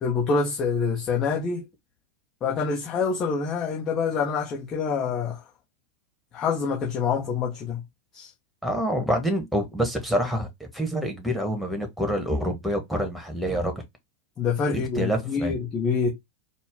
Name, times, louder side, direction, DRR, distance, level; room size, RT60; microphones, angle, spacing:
voice 1, 0.0-1.6 2.4-5.4 6.3-7.8 8.1-8.3 14.4-16.1, left 5 dB, 30° left, 1.2 m, -26 dB
voice 2, 8.6-10.5 10.7-13.8 14.7-15.5, equal, ahead, 1.4 m, -27 dB
4.5 x 2.4 x 3.6 m
figure-of-eight pair, 90°, 0 cm